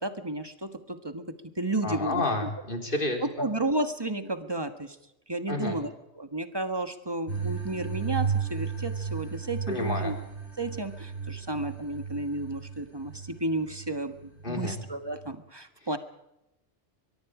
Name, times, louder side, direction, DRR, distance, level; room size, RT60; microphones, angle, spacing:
voice 1, 0.0-2.5 3.2-5.0 5.3-5.9 6.2-10.1 10.6-16.0, right 2 dB, 20° right, 8 dB, 1.5 m, -32 dB
voice 2, 1.8-3.5 5.5-5.8 9.7-10.1 14.4-14.8, left 2 dB, 45° left, 3 dB, 3.9 m, -30 dB
sound 1, 7.3-15.3, right 6 dB, 65° right, 5.4 m, -34 dB
23.0 x 23.0 x 5.0 m, 0.89 s
omnidirectional pair, 1.3 m